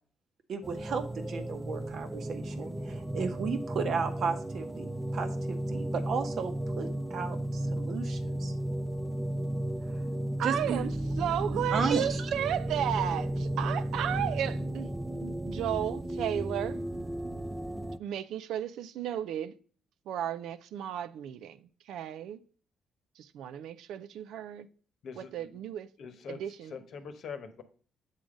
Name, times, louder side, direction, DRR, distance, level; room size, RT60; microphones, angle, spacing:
voice 1, 0.5-4.9 5.1-8.5 10.4-10.8 11.5-12.3, right 5 dB, 65° right, 1.0 m, -34 dB
sound 1, 0.6-18.0, right 1 dB, 10° right, 0.4 m, -34 dB
voice 2, 10.4-10.9 11.2-14.9 15.2-16.8 18.0-19.5 20.1-22.4 23.2-24.7 25.2-25.9 26.3-26.8, right 10 dB, 85° right, 0.3 m, -34 dB
voice 3, 25.0-25.6 26.0-26.4 26.7-27.6, left 6 dB, 65° left, 0.9 m, -43 dB
7.2 x 3.8 x 5.0 m
cardioid pair, 90°, 0 cm